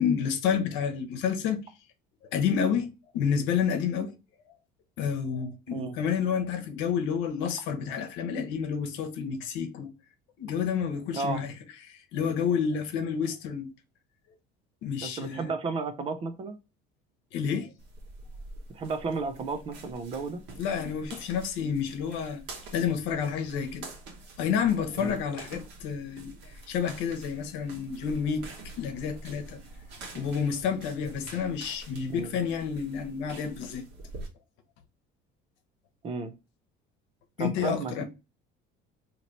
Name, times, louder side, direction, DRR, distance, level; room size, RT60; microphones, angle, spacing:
voice 1, 0.0-1.6 2.3-4.1 5.0-9.9 10.4-11.5 11.9-13.7 14.8-15.5 17.3-17.7 20.6-22.4 22.7-23.9 24.4-28.5 28.8-29.6 30.1-33.9 37.4-38.0, left 7 dB, 75° left, 0.9 m, -29 dB
voice 2, 15.0-16.6 18.7-20.4 25.0-25.2 32.1-32.3 36.0-36.3 37.4-38.0, right 4 dB, 30° right, 0.4 m, -33 dB
sound 1, 17.8-34.3, right 2 dB, 60° right, 1.2 m, -46 dB
3.1 x 2.8 x 3.9 m
cardioid pair, 165°, 20 cm